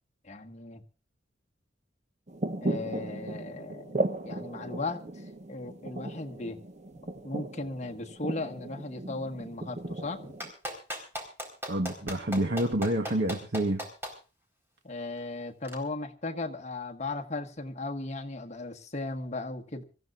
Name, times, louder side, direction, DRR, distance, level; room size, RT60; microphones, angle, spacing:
voice 1, 0.2-0.8 2.6-3.9 4.2-6.6 7.2-10.3 14.8-19.8, left 2 dB, 40° left, 1.5 m, -37 dB
sound 1, 2.3-10.5, right 2 dB, 40° right, 0.8 m, -36 dB
Clapping, 10.4-14.1 15.6-15.7, equal, 15° right, 4.4 m, -36 dB
voice 2, 11.7-13.8, right 1 dB, 65° right, 1.3 m, -28 dB
26.5 x 14.5 x 2.5 m
head